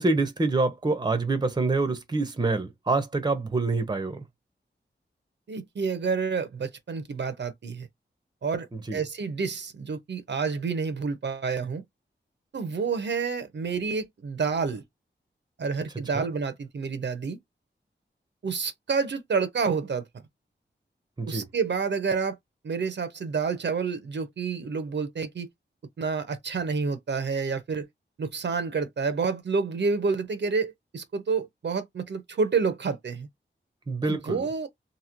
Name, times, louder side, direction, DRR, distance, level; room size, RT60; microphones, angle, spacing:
voice 1, 0.0-4.2 8.7-9.0 16.1-16.3 21.2-21.5 33.9-34.5, right 3 dB, 20° right, 0.7 m, -26 dB
voice 2, 5.5-7.9 8.4-11.8 12.5-14.8 15.6-17.4 18.4-20.0 21.3-22.4 22.6-25.5 26.0-27.9 28.2-33.3 34.0-34.7, right 5 dB, 70° right, 0.7 m, -29 dB
2.9 x 2.7 x 2.5 m
wide cardioid pair, 115°, 19 cm